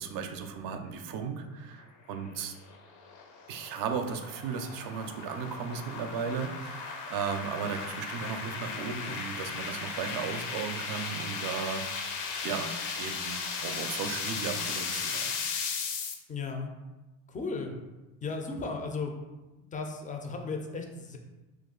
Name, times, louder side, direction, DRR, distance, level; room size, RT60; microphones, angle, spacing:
voice 1, 0.0-2.5 3.5-12.2 12.4-12.7 13.0-15.4, right 6 dB, 50° right, 6 dB, 0.5 m, -36 dB
sound 1, 2.2-16.1, left 5 dB, 75° left, 0.6 m, -36 dB
voice 2, 16.3-16.7 17.3-17.7 18.2-19.1 19.7-21.2, left 4 dB, 20° left, 3 dB, 0.4 m, -35 dB
2.4 x 2.3 x 3.7 m, 1.1 s
supercardioid pair, 80°, 44 cm